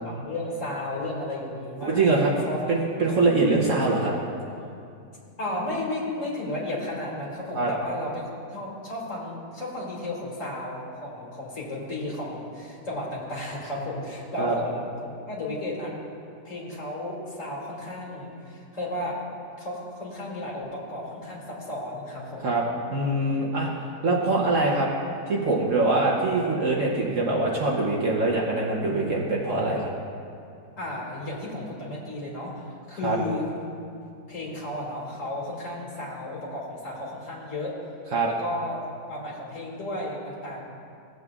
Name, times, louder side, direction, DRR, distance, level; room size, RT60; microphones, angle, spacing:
voice 1, 0.0-2.0 2.4-2.6 5.3-14.8 15.3-15.9 16.4-19.2 19.6-22.5 30.8-33.5 34.3-37.8 38.3-38.8 39.1-40.6, left 1 dB, 50° left, -5 dB, 2.3 m, -33 dB
voice 2, 1.8-2.3 2.7-4.1 7.5-7.7 14.4-14.5 22.4-22.6 22.9-23.7 24.0-24.9 25.3-29.9 33.0-33.2 38.1-38.3, right 2 dB, 55° right, -3 dB, 1.2 m, -23 dB
16.5 x 7.9 x 2.4 m, 2.5 s
omnidirectional pair, 1.8 m